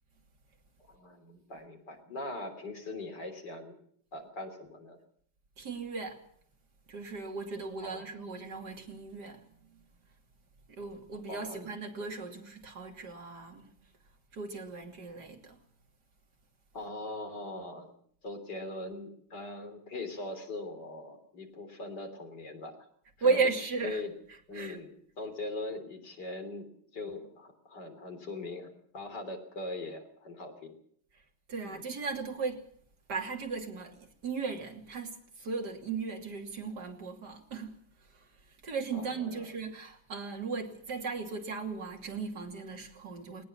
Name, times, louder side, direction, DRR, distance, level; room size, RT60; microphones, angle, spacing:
voice 1, 0.9-3.8 4.1-5.0 7.8-8.1 11.3-11.7 16.7-17.9 18.2-22.8 23.2-23.5 23.8-24.1 24.5-30.8 31.6-31.8 38.9-39.6, left 2 dB, 50° left, 4.1 m, -41 dB
voice 2, 5.6-6.2 6.9-9.4 10.7-13.7 14.3-15.6 23.2-24.0 24.6-24.8 31.5-32.6 33.1-37.7 38.6-43.4, right 4 dB, 50° right, 3.3 m, -36 dB
19.5 x 19.0 x 7.2 m
omnidirectional pair, 2.3 m